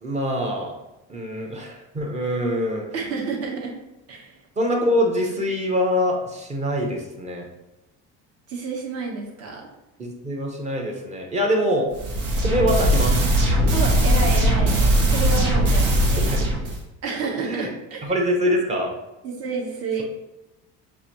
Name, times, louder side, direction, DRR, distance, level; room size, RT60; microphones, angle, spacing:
voice 1, 0.0-0.7 1.1-2.9 4.6-7.5 10.0-11.9 12.4-13.2 16.2-16.5 17.4-17.7 18.0-18.9, equal, 20° right, 0 dB, 0.8 m, -24 dB
voice 2, 2.9-3.7 4.1-4.4 8.5-9.7 13.7-16.4 17.0-18.1 19.2-20.0, right 4 dB, 50° right, -1 dB, 1.2 m, -30 dB
sound 1, 11.9-16.8, right 1 dB, 85° right, 1.3 m, -19 dB
6.7 x 2.6 x 2.9 m, 0.97 s
cardioid pair, 155°, 31 cm